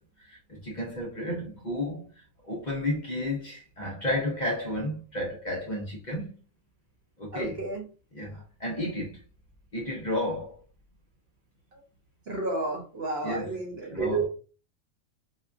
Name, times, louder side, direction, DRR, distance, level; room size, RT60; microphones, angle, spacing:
voice 1, 0.2-2.1 2.5-6.3 7.2-7.6 8.1-9.2 9.7-10.6 13.2-13.6 13.9-14.3, left 1 dB, 45° left, 0.7 m, -32 dB
voice 2, 7.3-7.8 11.7-11.8 12.3-14.3, right 3 dB, 55° right, 1.3 m, -31 dB
4.2 x 2.3 x 2.6 m
omnidirectional pair, 1.3 m